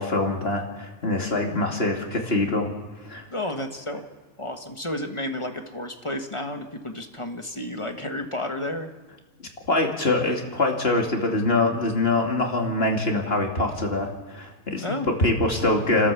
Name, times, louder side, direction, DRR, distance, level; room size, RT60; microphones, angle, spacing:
voice 1, 0.0-2.7 3.0-3.3 9.7-16.1, left 2 dB, 45° left, 2 dB, 2.6 m, -24 dB
voice 2, 3.3-4.1 4.4-8.9 14.8-15.1, left 1 dB, 20° left, 5 dB, 1.3 m, -31 dB
29.5 x 13.0 x 7.1 m, 1.2 s
omnidirectional pair, 1.5 m